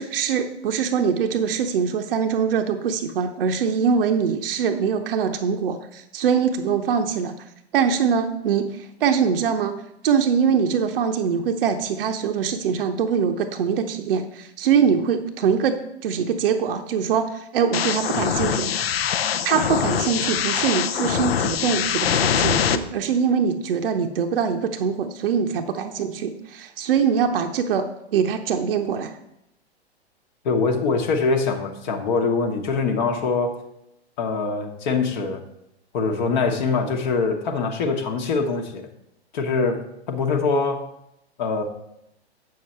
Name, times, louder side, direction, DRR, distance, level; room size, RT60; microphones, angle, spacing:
voice 1, 0.0-7.4 7.7-9.8 10.0-18.7 19.4-29.1, right 7 dB, 60° right, 6 dB, 0.7 m, -23 dB
sound 1, 17.7-22.8, left 8 dB, 65° left, 0.6 m, -23 dB
voice 2, 30.4-33.6 34.2-35.4 35.9-38.9 39.3-40.9 41.4-41.6, left 4 dB, 45° left, 3 dB, 1.1 m, -23 dB
7.9 x 6.7 x 4.2 m, 0.82 s
figure-of-eight pair, 110°, 32 cm